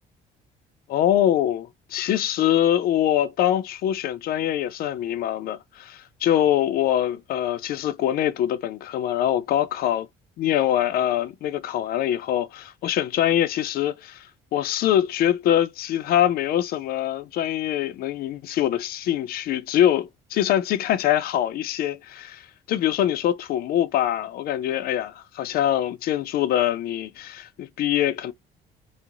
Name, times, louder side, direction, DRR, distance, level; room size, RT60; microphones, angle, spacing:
voice 1, 0.9-10.1 10.4-28.3, left 11 dB, 65° left, 0.4 m, -24 dB
3.0 x 2.0 x 2.5 m
cardioid pair, 110°, 17 cm